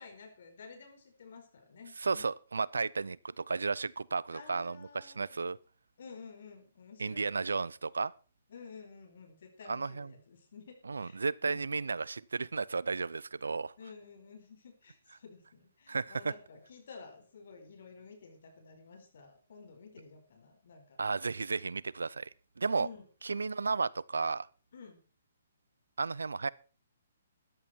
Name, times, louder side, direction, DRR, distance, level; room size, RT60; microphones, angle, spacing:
voice 1, 0.0-2.3 4.3-5.4 6.0-7.6 8.5-11.6 13.8-21.0 22.8-23.1 24.7-25.0, left 5 dB, 60° left, 4.6 m, -52 dB
voice 2, 2.0-5.6 7.0-8.1 9.7-10.1 10.9-13.7 15.9-16.3 21.0-22.3 22.6-22.9 23.2-24.5 26.0-26.5, right 4 dB, 80° right, 0.6 m, -33 dB
13.5 x 11.5 x 4.5 m
hypercardioid pair, 135°, 0 cm